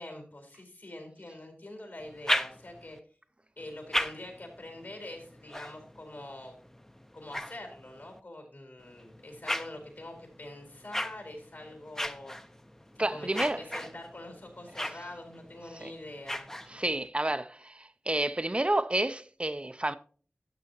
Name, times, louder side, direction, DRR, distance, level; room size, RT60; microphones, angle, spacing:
voice 1, 0.0-3.0 3.6-6.5 7.1-12.4 12.9-16.5, left 1 dB, 65° left, 4.3 m, -45 dB
sound 1, 2.0-3.0 3.6-8.2 8.8-17.1, left 1 dB, 10° left, 0.7 m, -38 dB
voice 2, 13.0-13.6 15.8-15.9 16.7-19.9, right 1 dB, 30° right, 0.5 m, -30 dB
13.0 x 8.1 x 2.9 m
wide cardioid pair, 55°, 4 cm